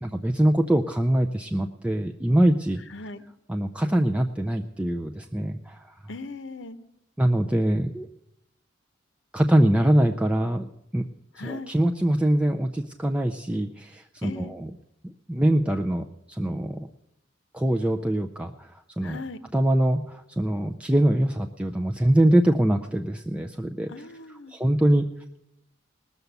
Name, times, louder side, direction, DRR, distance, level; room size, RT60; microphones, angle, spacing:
voice 1, 0.0-2.8 3.5-5.8 7.2-8.1 9.3-10.7 10.9-11.0 11.4-14.7 15.3-16.9 17.5-19.2 19.5-23.9 24.5-25.1, right 1 dB, 5° right, 4 dB, 0.4 m, -23 dB
voice 2, 2.9-3.2 6.1-6.9 11.4-11.7 14.2-14.5 19.0-19.4 23.9-24.6, left 3 dB, 75° left, 10 dB, 0.8 m, -38 dB
19.0 x 6.9 x 8.0 m, 0.83 s
head